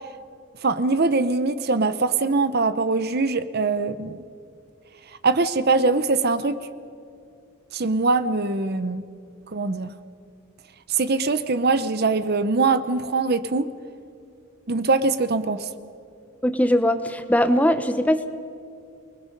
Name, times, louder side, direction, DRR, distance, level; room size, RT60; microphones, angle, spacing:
voice 1, 0.6-4.2 5.2-6.6 7.7-9.0 9.5-9.9 10.9-13.7 14.7-15.7, right 3 dB, 50° right, 13 dB, 0.8 m, -22 dB
voice 2, 16.4-18.3, equal, 5° left, 10 dB, 0.8 m, -20 dB
28.5 x 20.0 x 5.3 m, 2.5 s
head